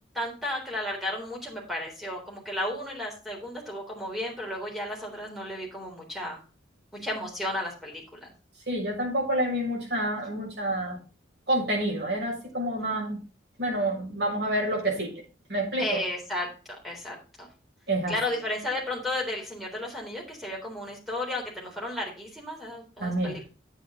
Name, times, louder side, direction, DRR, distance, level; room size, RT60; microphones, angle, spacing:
voice 1, 0.1-6.4 6.9-8.3 15.8-16.5 16.8-17.5 18.1-23.5, left 1 dB, ahead, -2 dB, 3.7 m, -33 dB
voice 2, 8.7-11.0 11.5-13.2 13.6-15.1 15.5-16.0 17.9-18.1 23.0-23.4, right 1 dB, 60° right, -2 dB, 5.9 m, -28 dB
8.9 x 8.6 x 3.7 m, 0.35 s
head